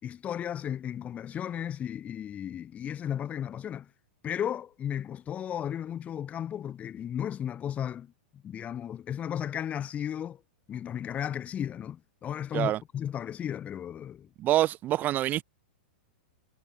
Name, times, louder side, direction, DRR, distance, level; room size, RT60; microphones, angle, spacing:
voice 1, 0.0-3.9 4.2-10.4 10.7-14.3, left 9 dB, 25° left, 3.6 m, -34 dB
voice 2, 14.4-15.4, right 13 dB, 30° right, 0.8 m, -26 dB
hypercardioid pair, 135°, 6 cm